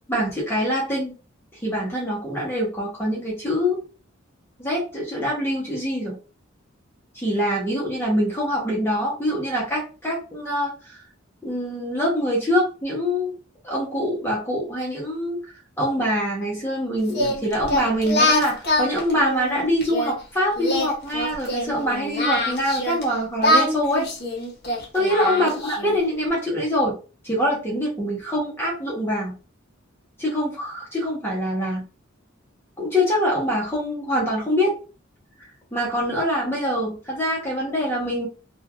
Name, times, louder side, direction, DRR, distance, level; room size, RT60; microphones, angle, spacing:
voice 1, 0.1-1.1 1.6-3.8 4.6-6.2 7.1-11.0 11.4-13.3 13.6-15.4 15.8-24.1 24.9-26.9 27.2-29.4 30.2-31.8 32.8-34.7 35.7-38.3, equal, 10° left, -4 dB, 0.7 m, -24 dB
Singing, 17.1-20.1 20.6-23.0 23.4-26.0, left 1 dB, 55° left, 0.8 m, -24 dB
3.1 x 2.3 x 2.2 m, 0.34 s
head